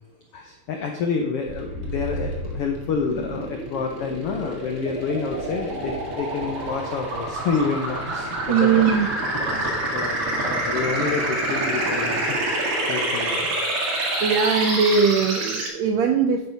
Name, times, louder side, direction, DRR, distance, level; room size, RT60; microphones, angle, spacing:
voice 1, 0.3-8.9 9.4-13.6, left 5 dB, 80° left, 3 dB, 1.3 m, -28 dB
sound 1, 1.5-15.7, right 1 dB, 45° right, 2.5 m, -27 dB
voice 2, 8.5-9.1 14.2-16.5, right 6 dB, 80° right, 4 dB, 1.6 m, -20 dB
10.5 x 6.6 x 5.3 m, 0.97 s
omnidirectional pair, 3.9 m